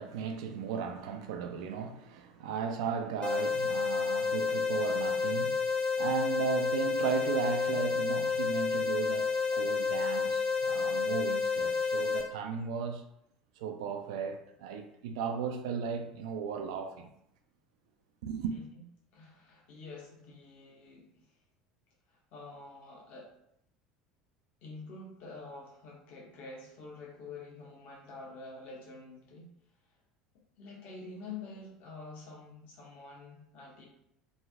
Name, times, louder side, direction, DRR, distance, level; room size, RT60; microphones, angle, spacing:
voice 1, 0.0-5.6 6.0-13.0 13.6-17.1 18.2-18.6, right 7 dB, 65° right, 0.3 m, -36 dB
sound 1, 3.2-12.2, left 5 dB, 25° left, 0.5 m, -30 dB
voice 2, 18.5-18.8 19.1-21.3 22.1-23.3 24.6-29.5 30.6-33.9, left 3 dB, 50° left, 1.0 m, -47 dB
3.1 x 2.6 x 2.4 m
figure-of-eight pair, 70°, 3 cm